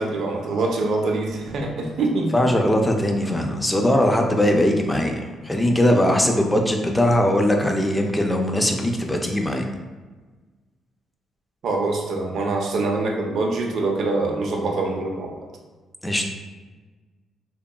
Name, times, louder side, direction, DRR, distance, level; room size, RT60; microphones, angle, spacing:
voice 1, 0.0-2.3 11.6-15.5, right 3 dB, 65° right, 1 dB, 0.5 m, -24 dB
voice 2, 2.3-5.1 5.4-9.6 16.0-16.3, left 1 dB, 10° left, 3 dB, 0.4 m, -20 dB
2.7 x 2.3 x 2.2 m, 1.3 s
cardioid pair, 90°, 0 cm